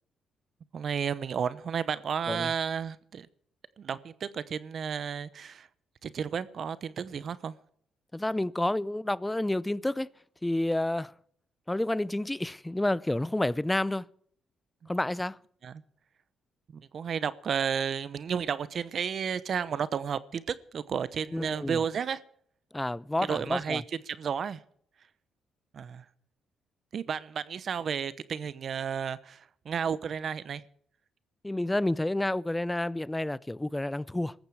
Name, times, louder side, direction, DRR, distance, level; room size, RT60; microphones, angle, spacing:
voice 1, 0.7-3.3 3.8-5.7 6.0-7.5 14.8-14.9 15.6-15.8 16.7-22.2 23.2-24.6 25.7-26.0 26.9-30.6, right 7 dB, 55° right, 0.8 m, -32 dB
voice 2, 8.1-10.1 10.4-11.1 11.7-14.1 14.9-15.4 21.3-21.8 22.7-23.8 31.4-34.3, left 1 dB, 10° left, 0.5 m, -29 dB
18.0 x 14.5 x 4.8 m
cardioid pair, 90°, 0 cm